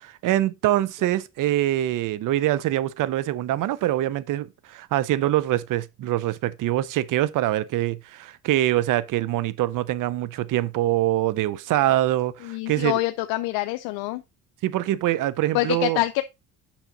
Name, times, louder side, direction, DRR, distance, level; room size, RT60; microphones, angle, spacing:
voice 1, 0.0-13.0 14.6-16.0, right 14 dB, 60° right, 0.7 m, -24 dB
voice 2, 12.4-14.2 15.5-16.2, left 18 dB, 80° left, 0.6 m, -25 dB
7.2 x 5.8 x 3.9 m
cardioid pair, 105°, 36 cm